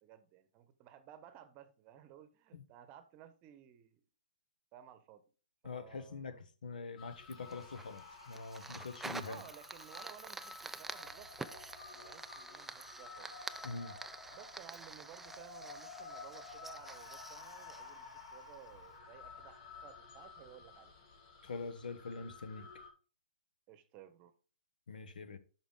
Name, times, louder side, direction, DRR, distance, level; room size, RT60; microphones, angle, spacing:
voice 1, 0.0-4.0 4.7-5.2 5.6-6.4 9.2-13.4 14.3-20.9 23.7-24.3, right 10 dB, 30° right, 1.0 m, -56 dB
voice 2, 5.6-6.4 6.6-9.4 13.6-13.9 21.4-22.7 24.9-25.4, left 4 dB, 70° left, 1.0 m, -44 dB
sound 1, 7.0-22.9, left 5 dB, 40° left, 2.1 m, -53 dB
Fire, 7.3-18.7, right 3 dB, 5° right, 0.3 m, -49 dB
8.7 x 5.8 x 3.7 m
hypercardioid pair, 130°, 5 cm